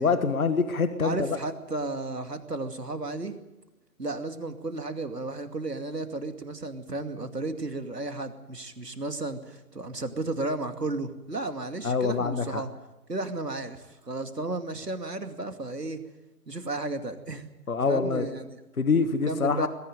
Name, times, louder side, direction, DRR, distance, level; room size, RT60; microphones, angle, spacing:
voice 1, 0.0-1.4 11.8-12.6 17.7-18.3 18.8-19.7, left 4 dB, 60° left, 10 dB, 1.8 m, -25 dB
voice 2, 1.0-3.3 4.0-12.7 13.1-16.0 16.5-17.5 17.9-18.6 19.3-19.7, right 2 dB, 80° right, 8 dB, 2.6 m, -33 dB
21.5 x 15.0 x 9.2 m, 1.0 s
figure-of-eight pair, 150°, 48 cm